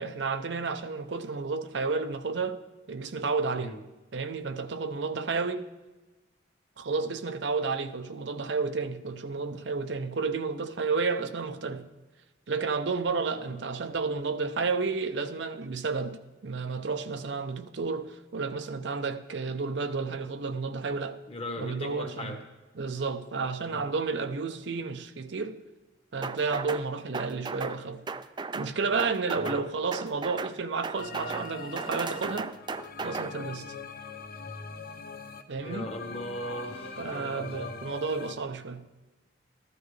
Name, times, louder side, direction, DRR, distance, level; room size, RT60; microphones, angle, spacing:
voice 1, 0.0-2.6 2.9-3.8 4.1-5.7 6.8-11.9 12.5-21.2 21.6-22.4 22.7-25.6 26.1-28.1 28.5-32.5 33.0-33.7 35.5-35.9 37.0-38.9, right 4 dB, 80° right, 0.6 m, -31 dB
voice 2, 21.3-22.4 23.6-23.9 29.4-29.6 35.6-37.7, left 1 dB, 30° left, 1.3 m, -39 dB
sound 1, 26.2-26.9 27.1-27.8 28.1-28.7 29.0-29.6 29.9-30.6 30.8-31.5 31.8-33.3, right 4 dB, 25° right, 0.3 m, -35 dB
sound 2, 31.0-38.4, left 4 dB, 50° left, 0.7 m, -42 dB
14.5 x 12.5 x 3.3 m
head